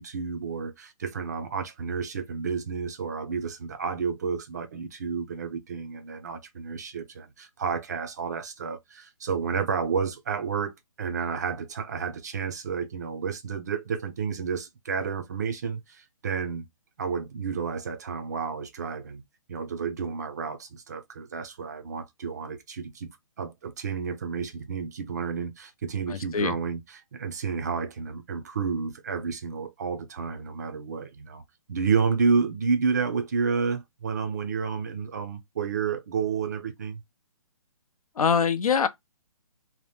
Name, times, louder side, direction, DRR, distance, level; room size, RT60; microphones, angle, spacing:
voice 1, 0.0-10.7 11.0-16.7 17.0-19.2 19.5-26.8 27.1-31.4 31.7-37.0, right 5 dB, 30° right, 0.4 m, -30 dB
voice 2, 26.1-26.6 38.2-38.9, left 6 dB, 90° left, 0.6 m, -24 dB
2.8 x 2.0 x 3.2 m
hypercardioid pair, 160°, 18 cm